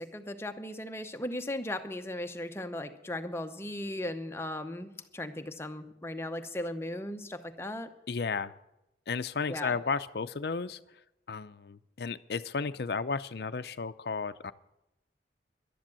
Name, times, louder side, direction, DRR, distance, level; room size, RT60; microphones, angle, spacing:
voice 1, 0.0-7.9 9.5-9.8, left 1 dB, 15° left, 7 dB, 0.8 m, -37 dB
voice 2, 8.1-8.5 9.1-10.8 11.3-14.5, left 4 dB, 60° left, 11 dB, 0.5 m, -33 dB
11.5 x 10.0 x 7.6 m, 0.86 s
head